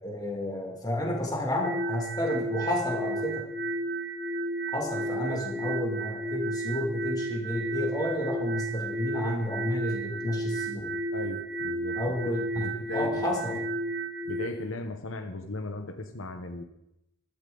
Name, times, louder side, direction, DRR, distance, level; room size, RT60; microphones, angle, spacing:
voice 1, 0.0-3.5 4.7-10.9 12.0-13.6, left 1 dB, 20° left, 0 dB, 2.3 m, -31 dB
sound 1, 1.6-14.5, right 2 dB, 40° right, 1.6 m, -33 dB
voice 2, 11.1-12.0 12.5-13.6 14.3-16.6, left 2 dB, 75° left, 8 dB, 1.1 m, -37 dB
15.5 x 13.0 x 3.9 m, 0.86 s
head